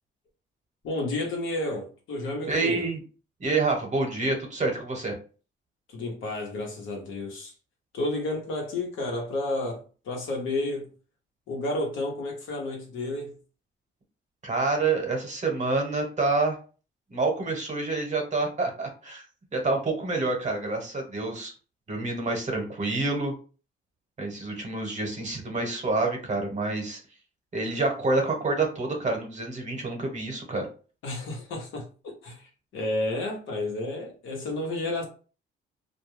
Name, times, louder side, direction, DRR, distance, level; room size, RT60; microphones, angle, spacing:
voice 1, 0.8-2.9 5.9-7.5 7.9-10.9 11.5-13.3 31.0-35.0, left 2 dB, 80° left, 1.0 m, -31 dB
voice 2, 2.5-3.0 3.4-5.1 14.4-16.6 17.1-19.2 19.5-21.5 21.9-23.3 24.2-27.0 27.5-30.7, right 3 dB, 35° right, 0.9 m, -27 dB
2.3 x 2.2 x 3.1 m
cardioid pair, 90°, 20 cm